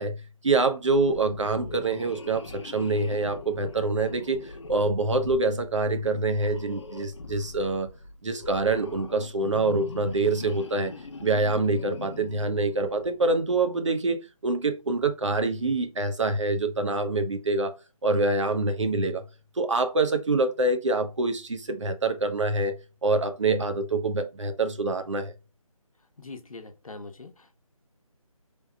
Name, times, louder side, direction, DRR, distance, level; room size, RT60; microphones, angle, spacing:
voice 1, 0.0-7.9 8.2-10.9 11.2-17.7 18.0-19.2 19.6-22.7 23.0-25.3, right 3 dB, 55° right, 0.9 m, -26 dB
sound 1, 0.8-13.3, left 3 dB, 50° left, 0.5 m, -42 dB
voice 2, 26.2-27.6, left 3 dB, 70° left, 0.9 m, -43 dB
5.6 x 3.4 x 2.2 m
figure-of-eight pair, 155°, 18 cm